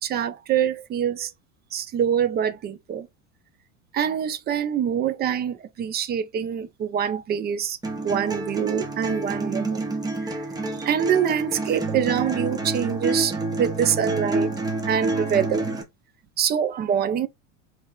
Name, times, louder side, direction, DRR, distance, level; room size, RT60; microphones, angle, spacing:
voice 1, 0.0-1.3 1.7-3.1 3.9-7.8 8.0-9.9 10.2-10.4 10.8-14.5 14.9-15.7 16.4-17.3, right 8 dB, 25° right, 0.5 m, -25 dB
sound 1, 7.8-15.8, right 2 dB, 10° right, 0.9 m, -28 dB
4.7 x 3.3 x 2.3 m
supercardioid pair, 130°, 37 cm